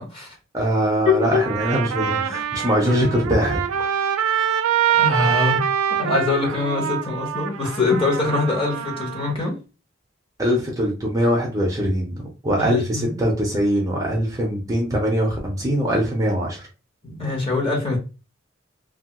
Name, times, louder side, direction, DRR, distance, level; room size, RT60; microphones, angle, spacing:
voice 1, 0.0-0.4 1.1-1.5 3.8-3.9 4.9-5.7 6.0-9.6 12.6-13.2 17.0-18.0, left 3 dB, 25° left, 0.8 m, -23 dB
voice 2, 0.5-3.6 10.4-12.1 12.4-16.7, equal, 15° right, 0.6 m, -22 dB
Trumpet, 1.3-9.3, right 9 dB, 85° right, 0.4 m, -24 dB
2.8 x 2.3 x 2.8 m
head